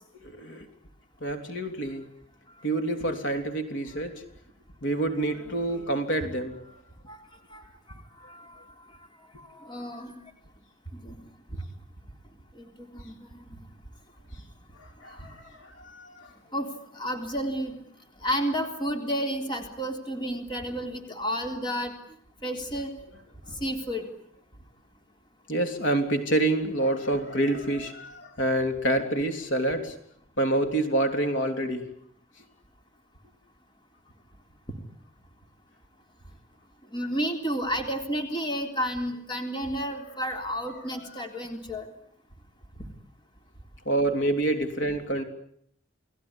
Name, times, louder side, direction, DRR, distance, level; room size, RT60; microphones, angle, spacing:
voice 1, 0.2-0.7 1.2-2.0 2.6-4.2 4.8-6.6 14.8-16.3 25.5-29.9 30.4-31.9 40.9-41.1 43.8-45.2, right 1 dB, 60° left, 6 dB, 3.2 m, -27 dB
voice 2, 8.2-8.6 9.4-10.2 10.9-11.2 11.5-11.6 12.6-13.6 15.1-15.3 16.5-16.7 16.9-17.8 18.2-21.9 22.4-22.9 23.5-24.1 36.9-41.9, equal, 25° left, 4 dB, 3.6 m, -31 dB
30.0 x 19.5 x 9.9 m, 0.70 s
head